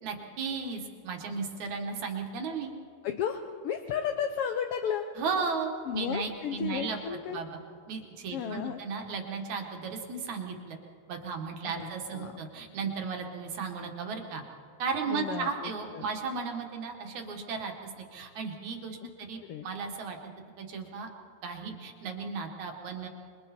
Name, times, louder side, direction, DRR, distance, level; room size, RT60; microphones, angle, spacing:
voice 1, 0.0-2.7 5.2-7.0 7.3-7.5 7.9-10.8 11.1-14.4 14.8-20.2 20.6-21.1 21.4-23.1, right 5 dB, 70° right, 3 dB, 3.0 m, -35 dB
voice 2, 3.0-5.0 5.8-7.4 8.3-8.8 11.6-12.4 15.1-16.1 19.0-19.1 19.5-19.7, left 8 dB, 70° left, 6 dB, 1.5 m, -34 dB
26.5 x 22.5 x 4.4 m, 2.3 s
omnidirectional pair, 3.5 m